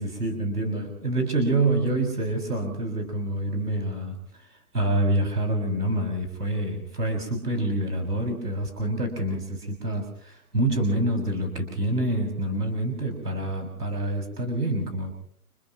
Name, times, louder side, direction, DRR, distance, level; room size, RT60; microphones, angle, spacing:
voice 1, 0.0-15.1, right 1 dB, 85° right, 3 dB, 6.5 m, -27 dB
30.0 x 29.5 x 3.1 m, 0.64 s
figure-of-eight pair, 130°, 45 cm